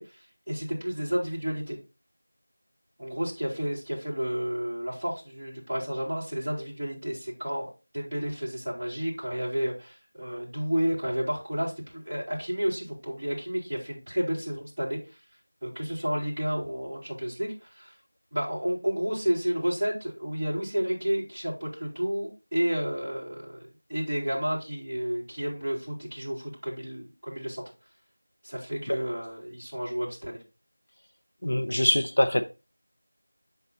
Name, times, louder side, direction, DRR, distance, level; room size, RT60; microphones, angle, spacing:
voice 1, 0.0-1.8 3.0-7.7 7.9-15.2 15.6-17.9 18.3-23.6 23.9-27.6 28.4-30.4, equal, 15° right, 2.9 m, -31 dB
voice 2, 31.4-32.4, left 1 dB, 60° left, 0.8 m, -23 dB
8.2 x 4.3 x 4.0 m
figure-of-eight pair, 175°, 0 cm